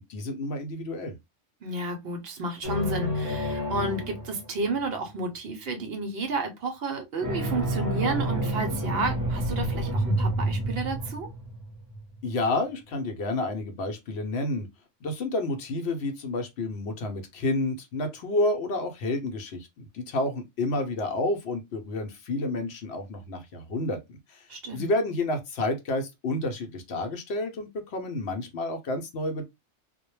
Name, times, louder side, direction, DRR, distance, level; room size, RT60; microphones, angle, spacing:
voice 1, 0.1-1.2 12.2-14.7 15.0-19.7 19.9-24.4 24.7-29.4, left 2 dB, 70° left, 0.8 m, -30 dB
voice 2, 1.6-11.3 24.5-24.9, right 2 dB, 65° right, 0.7 m, -31 dB
sound 1, 2.6-4.9 7.2-12.2, right 1 dB, 20° right, 0.6 m, -29 dB
2.1 x 2.1 x 3.0 m
omnidirectional pair, 1.2 m